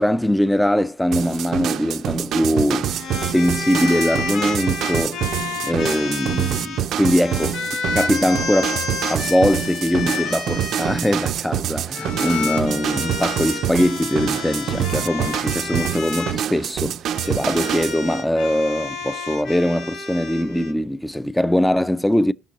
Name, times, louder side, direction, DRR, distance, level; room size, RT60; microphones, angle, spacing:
voice 1, 0.0-2.9 3.3-5.2 5.6-7.6 7.9-17.0 17.2-22.3, left 1 dB, 5° left, 0.4 m, -21 dB
sound 1, 1.1-18.0, right 10 dB, 75° right, 0.4 m, -26 dB
sound 2, 2.8-11.3 11.9-16.4 17.1-20.7, left 4 dB, 90° left, 1.6 m, -30 dB
17.0 x 6.0 x 2.9 m
cardioid pair, 90°, 0 cm